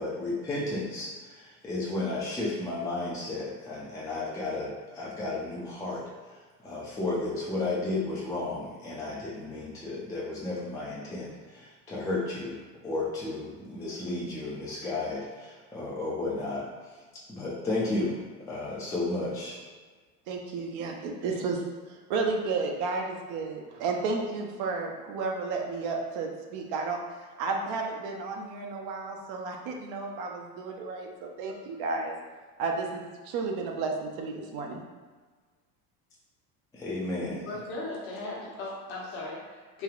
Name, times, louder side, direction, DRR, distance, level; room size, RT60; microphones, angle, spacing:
voice 1, 0.0-6.0 6.6-16.6 17.3-18.2 18.5-19.6 31.5-31.6 36.7-37.5, left 2 dB, 10° left, -6 dB, 0.4 m, -33 dB
voice 2, 20.3-21.6 21.9-27.0 27.4-32.1 32.6-34.8, right 4 dB, 55° right, 1 dB, 0.6 m, -32 dB
voice 3, 37.4-39.8, left 2 dB, 55° left, -4 dB, 1.1 m, -37 dB
3.3 x 2.2 x 2.4 m, 1.4 s
hypercardioid pair, 80°, 46 cm